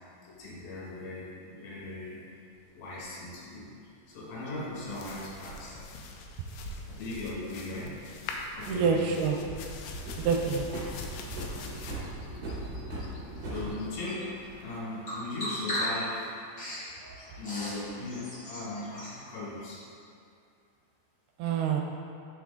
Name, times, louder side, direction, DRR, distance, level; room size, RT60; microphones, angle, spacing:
voice 1, 0.2-2.4 2.7-3.7 4.1-5.8 6.9-7.9 8.5-9.1 11.6-11.9 13.4-14.3 14.6-16.3 17.3-19.8, left 2 dB, 70° left, -6 dB, 3.2 m, -38 dB
sound 1, 4.6-5.9 8.1-9.1 9.5-13.7, right 1 dB, 55° right, 2.0 m, -40 dB
sound 2, 4.8-14.8, left 2 dB, 90° left, 2.6 m, -43 dB
voice 2, 8.7-9.4 10.2-10.9 21.4-21.8, right 6 dB, 85° right, 2 dB, 2.5 m, -27 dB
Bird vocalization bird call bird song, 13.5-19.2, equal, 55° left, 1.0 m, -38 dB
6.1 x 6.0 x 3.7 m, 2.4 s
omnidirectional pair, 4.5 m